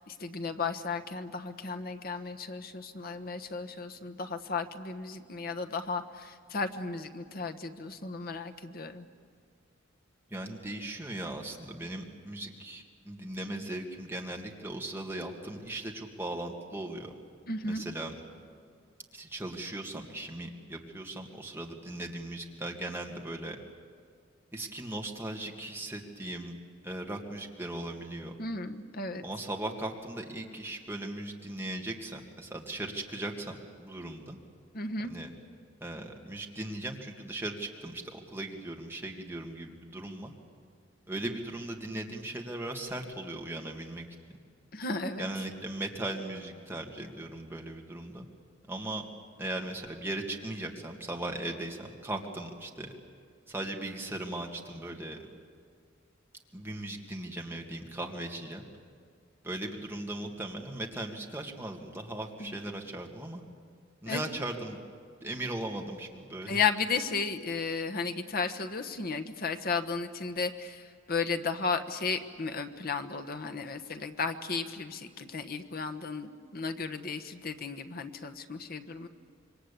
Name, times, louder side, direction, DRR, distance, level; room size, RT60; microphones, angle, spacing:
voice 1, 0.0-9.1 17.5-17.8 28.4-29.2 34.7-35.1 44.7-45.3 62.4-62.5 64.1-64.2 66.5-79.1, left 4 dB, 50° left, 7 dB, 1.2 m, -34 dB
voice 2, 10.3-17.1 17.6-18.1 19.1-23.6 24.5-26.6 26.8-28.3 29.2-34.4 35.0-35.3 35.8-40.3 41.1-44.1 45.2-48.3 48.7-49.1 49.4-52.9 53.5-55.2 56.5-58.6 59.4-63.4 64.0-64.8 65.2-66.6, right 1 dB, 10° right, 1 dB, 2.3 m, -38 dB
26.5 x 23.5 x 8.5 m, 2.1 s
head